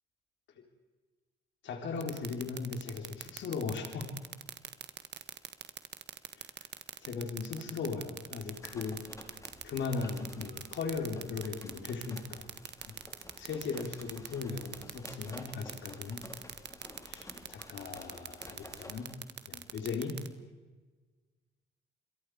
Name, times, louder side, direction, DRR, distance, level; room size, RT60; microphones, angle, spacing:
voice 1, 1.6-4.1 6.4-6.5 7.0-9.1 9.6-12.5 12.9-13.0 13.4-16.3 17.1-19.1 19.5-20.2, left 4 dB, 70° left, 3 dB, 3.8 m, -38 dB
sound 1, 2.0-20.3, right 10 dB, 60° right, 1.5 m, -41 dB
sound 2, 8.3-19.2, left 1 dB, 15° left, 4.6 m, -52 dB
28.5 x 22.5 x 4.9 m, 1.3 s
cardioid pair, 90°, 20 cm